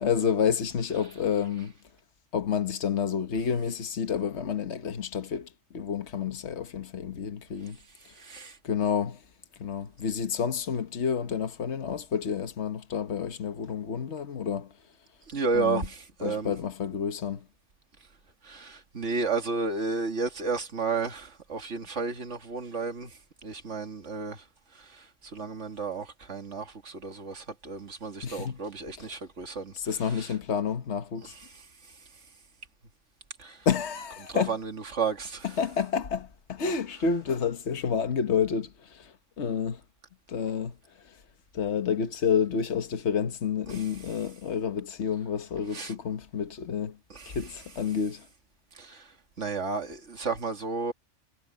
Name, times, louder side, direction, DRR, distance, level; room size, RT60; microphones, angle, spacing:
voice 1, 0.0-1.7 2.3-5.5 5.7-7.8 8.6-9.2 9.6-14.7 15.5-15.8 16.2-17.4 28.2-28.6 29.0-29.1 29.7-31.3 33.6-34.5 35.6-39.8 40.3-40.8 41.5-47.0 47.3-48.2, left 7 dB, 65° left, 1.5 m, -29 dB
voice 2, 8.2-8.6 15.3-16.5 18.4-24.4 24.7-29.7 30.0-30.3 31.2-31.6 33.4-33.7 34.3-35.6 43.7-43.9 45.7-45.9 47.1-47.4 48.7-49.1 49.4-50.9, right 4 dB, 70° right, 2.4 m, -33 dB
omnidirectional pair, 1.3 m